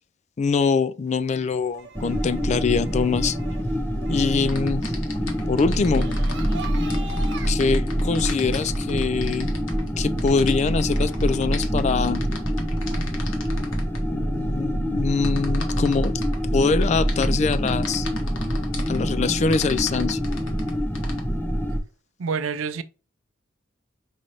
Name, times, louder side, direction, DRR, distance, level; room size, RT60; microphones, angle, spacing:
voice 1, 0.4-3.4 4.1-4.9 5.5-6.2 7.5-9.5 10.0-12.3 14.1-16.1 16.5-18.1 18.9-20.2, left 4 dB, 35° left, 0.3 m, -24 dB
sound 1, 1.1-7.5, right 3 dB, 60° right, 0.8 m, -42 dB
sound 2, 1.9-21.8, equal, 10° left, 0.7 m, -25 dB
sound 3, 4.4-14.0 15.2-16.4 16.8-19.0 19.5-21.2, left 4 dB, 75° left, 1.2 m, -38 dB
voice 2, 22.2-22.8, right 5 dB, 90° right, 0.5 m, -27 dB
5.4 x 2.6 x 3.0 m
head